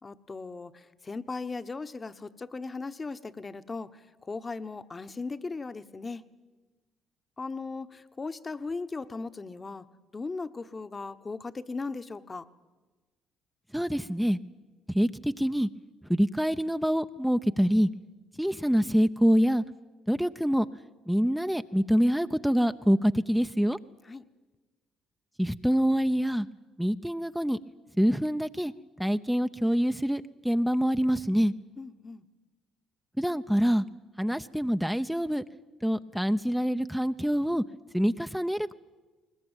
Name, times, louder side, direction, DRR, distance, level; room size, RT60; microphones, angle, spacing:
voice 1, 0.0-6.2 7.4-9.8 10.1-12.5 24.0-24.2 31.8-32.2, left 3 dB, 30° left, 11 dB, 1.1 m, -38 dB
voice 2, 13.7-14.4 14.9-15.7 16.1-17.9 18.4-19.6 20.1-20.7 21.1-23.8 25.4-26.5 26.8-27.6 28.0-28.7 29.0-31.5 33.2-33.8 34.2-35.5 35.8-37.6 37.9-38.7, equal, ahead, 9 dB, 0.7 m, -25 dB
21.0 x 20.0 x 9.1 m, 1.3 s
hypercardioid pair, 55°, 0 cm